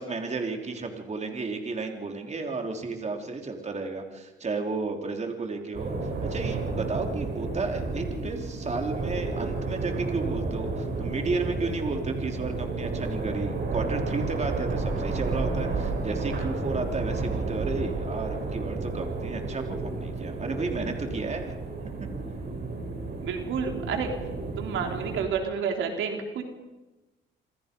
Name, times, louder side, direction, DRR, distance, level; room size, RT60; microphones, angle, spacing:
voice 1, 0.0-21.5, right 3 dB, 35° right, 4 dB, 3.7 m, -33 dB
sound 1, 5.7-25.2, right 3 dB, 55° right, 7.9 m, -31 dB
voice 2, 23.2-24.1 24.6-26.4, right 6 dB, 80° right, 4 dB, 3.5 m, -30 dB
27.5 x 27.0 x 5.4 m, 1.1 s
cardioid pair, 90°, 20 cm